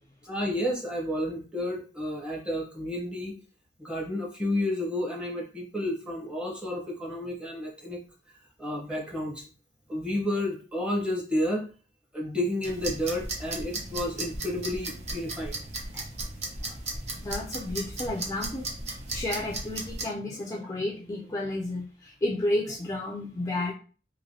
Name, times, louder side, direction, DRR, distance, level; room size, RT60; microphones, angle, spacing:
voice 1, 0.2-3.3 3.8-8.0 8.6-9.5 9.9-11.7 12.1-15.6 15.9-16.0, left 1 dB, 5° right, -2 dB, 0.8 m, -31 dB
sound 1, 12.6-20.0, right 2 dB, 40° right, 0.7 m, -36 dB
voice 2, 17.2-18.7 19.1-23.7, left 1 dB, 20° left, -1 dB, 0.4 m, -31 dB
3.0 x 2.6 x 2.7 m, 0.39 s
head